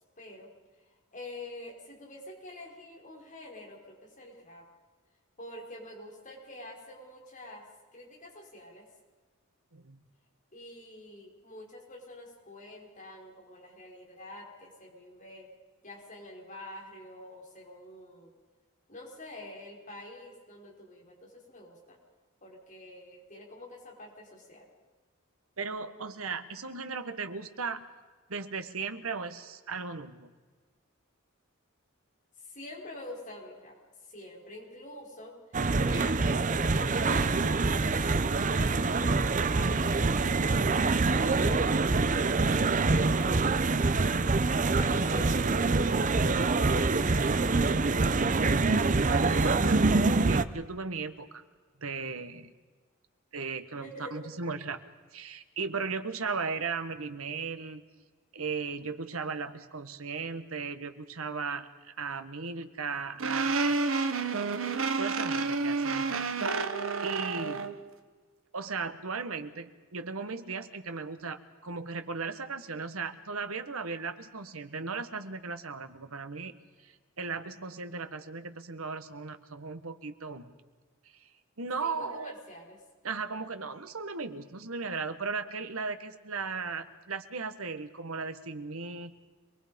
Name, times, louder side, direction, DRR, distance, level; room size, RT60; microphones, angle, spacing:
voice 1, 0.2-0.5 1.1-4.6 5.4-7.6 7.9-8.9 10.5-15.5 15.8-18.3 18.9-22.0 22.4-24.6 32.4-33.8 34.1-43.6 44.5-48.2 53.8-54.3 81.8-82.8, left 1 dB, 40° left, -2 dB, 5.4 m, -46 dB
voice 2, 9.7-10.0 25.6-27.8 28.3-30.3 49.1-51.4 51.8-52.5 53.3-54.8 55.1-57.8 58.3-64.1 65.0-66.6 67.0-67.7 68.5-76.5 76.8-80.5 81.2-81.3 81.6-82.3 83.0-89.1, right 4 dB, 90° right, 9 dB, 1.5 m, -37 dB
sound 1, 35.5-50.4, right 3 dB, 40° right, 0.7 m, -25 dB
sound 2, 63.2-67.8, right 4 dB, 70° right, 1.3 m, -29 dB
26.5 x 21.0 x 5.3 m, 1.4 s
head